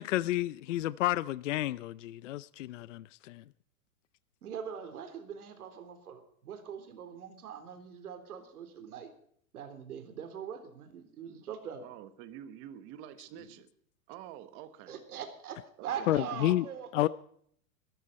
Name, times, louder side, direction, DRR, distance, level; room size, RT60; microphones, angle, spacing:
voice 1, 0.0-2.0 2.3-3.4 16.1-16.6 16.9-17.1, left 15 dB, 55° left, 0.6 m, -30 dB
voice 2, 4.4-9.1 9.5-11.9 14.9-17.1, right 8 dB, 80° right, 3.8 m, -42 dB
voice 3, 11.8-13.7 14.1-14.9 15.8-16.1, right 11 dB, 25° right, 1.3 m, -47 dB
22.5 x 14.0 x 4.2 m
supercardioid pair, 160°, 44 cm